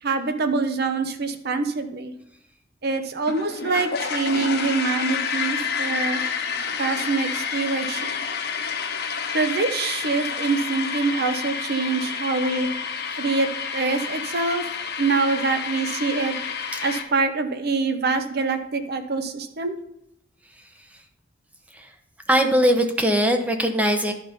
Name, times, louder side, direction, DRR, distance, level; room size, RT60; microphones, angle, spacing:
voice 1, 0.0-2.1 2.8-6.2 6.8-8.2 9.3-12.7 13.2-14.6 15.0-16.4 16.8-19.8, right 4 dB, 55° right, 8 dB, 0.8 m, -25 dB
sound 1, 3.2-17.0, left 6 dB, 60° left, 1.0 m, -29 dB
voice 2, 22.3-24.1, equal, 10° right, 5 dB, 0.9 m, -20 dB
11.0 x 4.1 x 5.1 m, 0.80 s
head